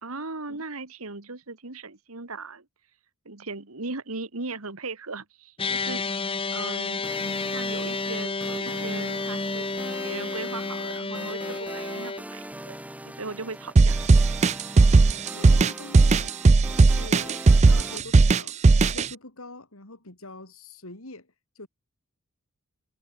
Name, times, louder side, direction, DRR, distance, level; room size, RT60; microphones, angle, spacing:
voice 1, 0.0-2.7 3.3-6.0 6.5-7.1 7.5-9.7 10.0-12.8 13.0-14.0, right 3 dB, 85° right, 2.2 m, -37 dB
sound 1, 5.6-12.2, left 3 dB, 25° left, 1.8 m, -31 dB
sound 2, 7.0-18.0, right 1 dB, 5° right, 2.1 m, -41 dB
sound 3, 13.8-19.1, right 3 dB, 30° right, 0.4 m, -17 dB
voice 2, 14.9-16.4 16.7-18.6 18.9-21.7, left 2 dB, 80° left, 4.5 m, -44 dB
head